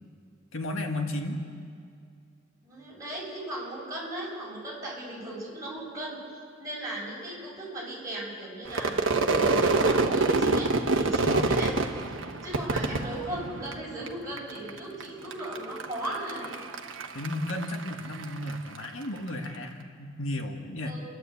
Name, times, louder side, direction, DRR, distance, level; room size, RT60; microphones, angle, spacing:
voice 1, 0.5-1.4 11.2-11.5 17.1-20.9, left 1 dB, 85° left, 3 dB, 1.8 m, -33 dB
voice 2, 2.6-6.2 6.6-11.7 12.4-16.5 20.8-21.1, right 1 dB, 15° right, -6 dB, 7.1 m, -37 dB
Crowd / Fireworks, 8.7-14.1 14.4-15.0 15.3-18.9, right 3 dB, 75° right, 1.2 m, -26 dB
30.0 x 11.5 x 8.3 m, 2.3 s
head